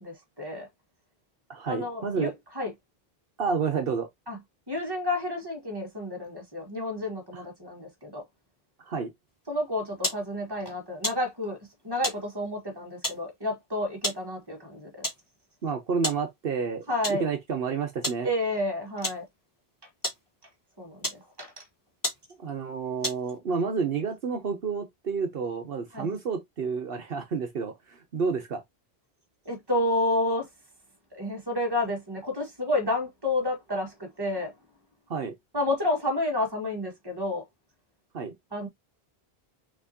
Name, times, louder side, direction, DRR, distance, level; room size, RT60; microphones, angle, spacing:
voice 1, 0.0-0.7 1.6-2.7 4.3-4.4 4.7-8.2 9.5-11.6 11.8-15.0 16.9-17.3 18.2-19.2 20.8-21.6 25.9-26.1 29.4-30.5 31.1-34.5 35.5-37.4 38.5-38.7, left 1 dB, 25° right, 1.7 m, -30 dB
voice 2, 1.5-2.3 3.4-4.1 7.3-7.4 8.8-9.1 15.6-18.3 22.4-28.6 35.1-35.3 38.1-38.3, right 5 dB, 70° right, 1.1 m, -30 dB
sound 1, 10.0-10.2 11.0-11.2 12.0-12.2 13.0-13.2 14.0-14.2 15.0-15.2 16.0-16.2 17.0-17.2 18.0-18.2 19.0-19.2 20.0-20.2 21.0-21.2 21.7-21.8 22.0-22.2 23.0-23.4, left 1 dB, 20° left, 1.3 m, -31 dB
5.9 x 2.9 x 2.8 m
omnidirectional pair, 1.0 m